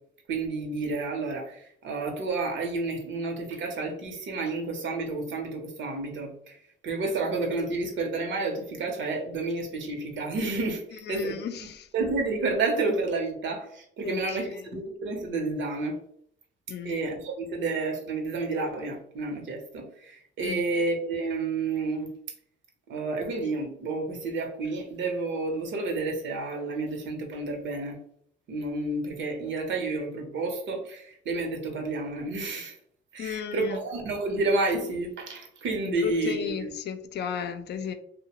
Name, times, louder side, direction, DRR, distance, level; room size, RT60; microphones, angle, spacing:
voice 1, 0.3-6.6 6.8-16.0 16.8-22.1 22.9-28.0 28.5-32.8 33.1-36.7, right 3 dB, 70° right, 3 dB, 0.8 m, -30 dB
voice 2, 11.1-11.9 14.0-14.6 16.7-17.0 20.4-20.6 33.2-33.8 35.8-37.9, left 8 dB, 60° left, 8 dB, 0.4 m, -34 dB
2.7 x 2.1 x 2.8 m, 0.66 s
cardioid pair, 90°, 20 cm